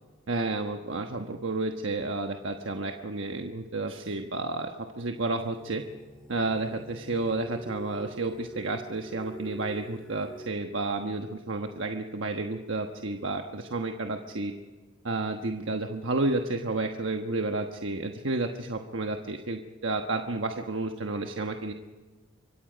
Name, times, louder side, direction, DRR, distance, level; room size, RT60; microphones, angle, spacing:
voice 1, 0.3-4.7 5.0-5.8 6.3-14.5 15.0-21.7, right 2 dB, 70° right, 4 dB, 1.2 m, -31 dB
sound 1, 5.2-10.5, right 2 dB, 5° left, 2.1 m, -45 dB
25.5 x 23.5 x 5.2 m, 1.3 s
head